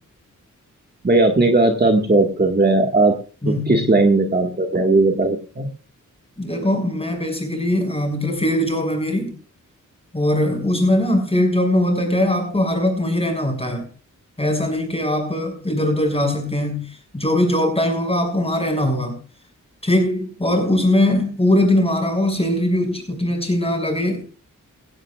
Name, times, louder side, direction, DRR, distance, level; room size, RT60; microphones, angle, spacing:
voice 1, 1.0-3.2 3.7-5.7, right 2 dB, 30° right, 1.9 m, -17 dB
voice 2, 3.4-3.9 6.4-9.4 10.1-13.9 14.4-19.2 19.8-24.2, left 1 dB, 20° left, 6.3 m, -21 dB
17.0 x 16.0 x 2.5 m
wide cardioid pair, 80°, 32 cm